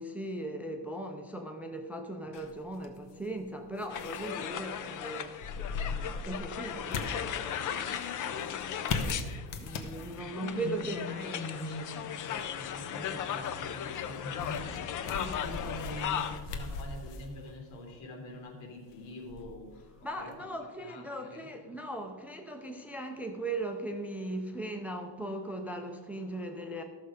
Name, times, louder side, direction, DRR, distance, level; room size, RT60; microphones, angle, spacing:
voice 1, 0.0-9.3 9.6-11.0 20.0-26.8, right 1 dB, 5° right, 4 dB, 0.4 m, -39 dB
sound 1, 2.3-20.4, left 4 dB, 70° left, 1.3 m, -42 dB
sound 2, 3.9-16.4, left 9 dB, 45° left, 0.6 m, -37 dB
voice 2, 10.2-20.5 20.8-21.5, left 2 dB, 85° left, 1 dB, 3.0 m, -43 dB
14.0 x 6.6 x 5.0 m, 1.5 s
cardioid pair, 180°, 46 cm